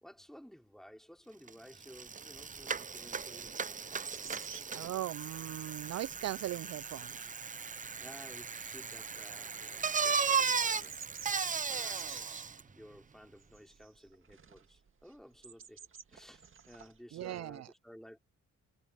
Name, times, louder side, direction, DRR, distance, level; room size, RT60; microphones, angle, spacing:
voice 1, 0.0-3.7 8.0-11.0 11.7-12.3 12.8-15.8 16.1-18.2, equal, ahead, 3.7 m, -55 dB
Bicycle, 1.5-1.6 1.8-12.6, right 5 dB, 25° right, 0.8 m, -36 dB
sound 1, 3.4-17.0, right 6 dB, 40° right, 2.1 m, -54 dB
voice 2, 4.7-7.3 17.1-17.7, right 13 dB, 60° right, 0.5 m, -39 dB
cardioid pair, 90°, 30 cm